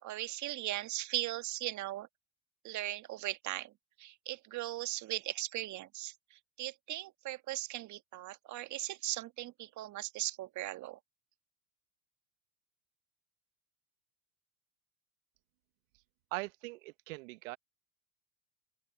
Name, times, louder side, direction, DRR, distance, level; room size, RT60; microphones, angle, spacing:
voice 1, 0.0-2.1 2.6-3.7 4.0-11.0, right 15 dB, 40° right, 1.7 m, -38 dB
voice 2, 16.3-17.6, right 23 dB, 60° right, 1.4 m, -41 dB
open air
hypercardioid pair, 80°, 44 cm